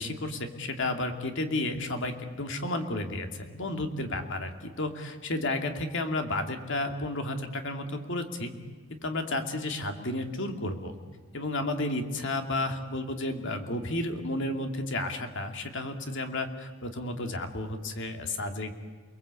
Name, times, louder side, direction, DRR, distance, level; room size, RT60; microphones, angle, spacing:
voice 1, 0.0-8.5 8.9-10.9 11.3-18.7, left 2 dB, 55° left, 5 dB, 2.5 m, -32 dB
29.5 x 20.5 x 8.3 m, 1.5 s
head